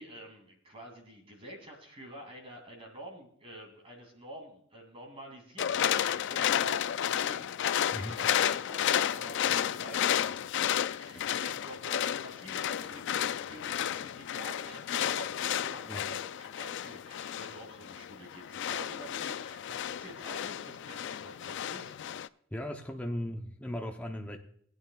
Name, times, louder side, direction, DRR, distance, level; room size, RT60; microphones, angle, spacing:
voice 1, 0.0-22.0, right 1 dB, 25° right, 2 dB, 2.5 m, -48 dB
sound 1, 5.6-22.3, left 10 dB, 60° left, 0.3 m, -32 dB
voice 2, 22.5-24.4, left 1 dB, 5° left, 2 dB, 0.7 m, -37 dB
19.5 x 9.0 x 2.3 m, 0.64 s
head